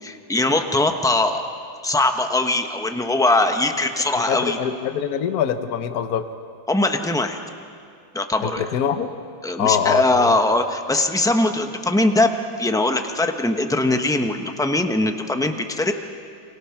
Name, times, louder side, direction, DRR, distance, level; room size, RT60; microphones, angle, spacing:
voice 1, 0.0-1.4 1.8-4.6 6.7-7.4 8.1-8.7 9.4-15.9, left 2 dB, 5° left, 5 dB, 0.5 m, -21 dB
voice 2, 4.3-6.2 8.4-9.1 9.6-10.3, left 8 dB, 55° left, 9 dB, 1.3 m, -23 dB
30.0 x 24.5 x 5.9 m, 2.4 s
omnidirectional pair, 2.2 m